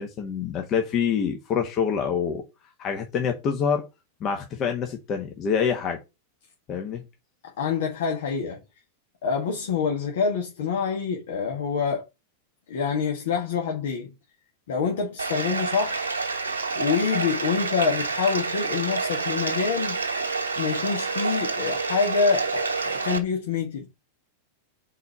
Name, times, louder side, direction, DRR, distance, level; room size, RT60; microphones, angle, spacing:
voice 1, 0.0-2.4 2.8-3.9 4.2-6.0 6.7-7.0, left 7 dB, 35° left, 1.3 m, -26 dB
voice 2, 7.6-8.6 9.2-12.1 12.7-14.1 14.7-16.0 16.7-20.0 20.6-23.9, left 5 dB, 60° left, 1.6 m, -26 dB
Bathtub (filling or washing), 15.2-23.2, right 4 dB, 75° right, 1.3 m, -28 dB
4.7 x 4.6 x 5.5 m
figure-of-eight pair, 90°, 0 cm